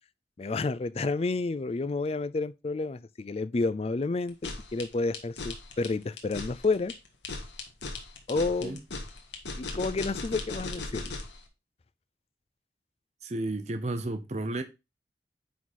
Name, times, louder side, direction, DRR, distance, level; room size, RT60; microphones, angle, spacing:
voice 1, 0.4-6.9 8.3-8.8 9.5-11.1, left 3 dB, 35° left, 0.4 m, -30 dB
sound 1, 4.3-11.4, left 3 dB, 85° left, 1.7 m, -38 dB
voice 2, 13.2-14.6, right 2 dB, 40° right, 0.7 m, -32 dB
9.4 x 3.9 x 4.1 m
head